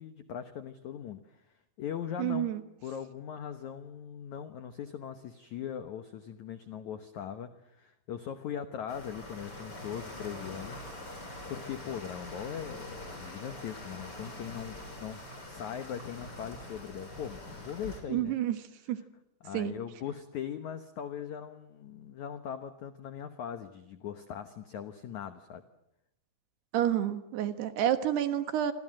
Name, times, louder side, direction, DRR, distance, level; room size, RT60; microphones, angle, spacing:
voice 1, 0.0-1.4 1.8-2.5 2.8-10.8 11.5-18.4 19.4-25.6, left 9 dB, 85° left, 9 dB, 1.6 m, -40 dB
voice 2, 2.2-2.6 18.1-18.6 18.9-19.0 19.5-19.7 26.7-28.7, right 11 dB, 70° right, 10 dB, 3.2 m, -29 dB
sound 1, 8.9-18.0, left 1 dB, 20° left, 6.6 m, -44 dB
28.0 x 24.5 x 7.7 m, 0.85 s
omnidirectional pair, 5.2 m